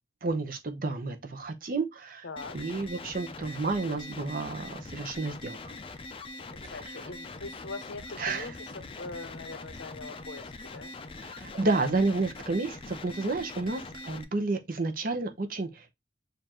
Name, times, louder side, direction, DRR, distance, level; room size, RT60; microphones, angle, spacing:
voice 1, 0.2-2.3 2.5-5.7 8.2-8.5 11.2-15.9, right 3 dB, 50° right, 0.8 m, -31 dB
voice 2, 2.2-2.6 6.5-10.9, left 3 dB, 80° left, 0.7 m, -42 dB
sound 1, 2.4-14.2, left 3 dB, 30° left, 0.5 m, -43 dB
6.8 x 2.6 x 2.9 m
head